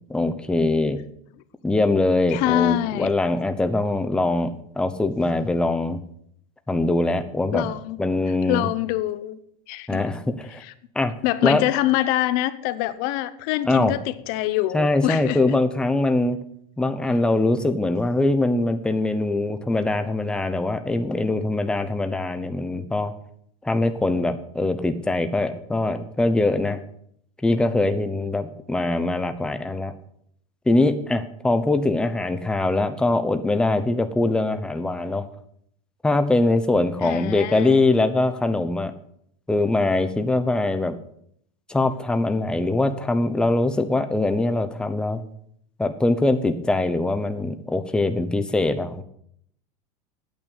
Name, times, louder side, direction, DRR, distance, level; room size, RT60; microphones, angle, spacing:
voice 1, 0.1-1.0 1.6-6.0 6.7-7.7 8.0-8.7 9.9-10.6 10.9-11.1 11.4-11.6 13.7-13.9 14.7-16.4 16.8-23.1 23.6-26.8 27.4-29.9 30.7-35.2 36.0-38.9 39.5-41.0 41.7-45.2 45.8-49.0, left 2 dB, 5° left, 8 dB, 0.8 m, -22 dB
voice 2, 2.3-3.1 7.5-8.0 8.5-9.4 9.7-10.1 10.6-10.7 11.2-15.5 37.0-37.9, left 14 dB, 50° left, 14 dB, 0.9 m, -25 dB
9.1 x 8.9 x 8.3 m, 0.68 s
supercardioid pair, 155°, 19 cm